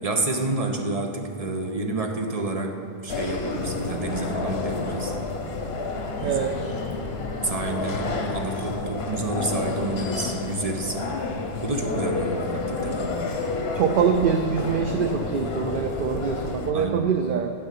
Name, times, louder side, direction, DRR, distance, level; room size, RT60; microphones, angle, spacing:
voice 1, 0.0-5.2 6.2-6.7 7.4-11.0 11.6-13.3 16.7-17.1, right 2 dB, 35° right, 2 dB, 1.2 m, -29 dB
sound 1, 3.1-16.7, left 3 dB, 80° left, 1.2 m, -30 dB
voice 2, 6.2-6.7 13.7-17.5, right 6 dB, 60° right, 6 dB, 0.8 m, -24 dB
12.5 x 5.4 x 8.4 m, 2.3 s
omnidirectional pair, 1.0 m